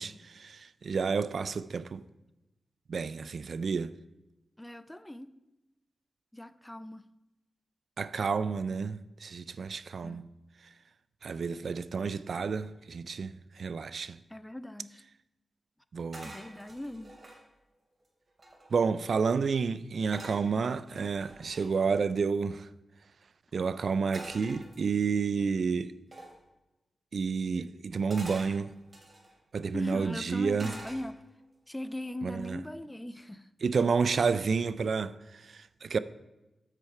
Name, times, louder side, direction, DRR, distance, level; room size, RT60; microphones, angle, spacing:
voice 1, 0.0-2.0 2.9-3.9 8.0-10.3 11.2-14.2 15.9-16.3 18.7-22.7 23.5-25.9 27.1-28.7 29.5-30.7 32.2-32.6 33.6-36.0, right 5 dB, 70° right, 0.3 m, -30 dB
voice 2, 4.6-5.3 6.3-7.0 10.0-10.2 14.3-15.0 16.2-17.1 29.7-31.2 31.7-33.5, left 1 dB, 15° left, 0.5 m, -40 dB
sound 1, 16.1-17.4 18.0-18.1 18.3-18.9 20.1-21.7 24.1-25.2 26.1-26.4 28.1-29.3 30.6-31.4 31.9-32.2, right 1 dB, 50° right, 2.7 m, -47 dB
8.3 x 6.3 x 4.4 m
cardioid pair, 45°, 0 cm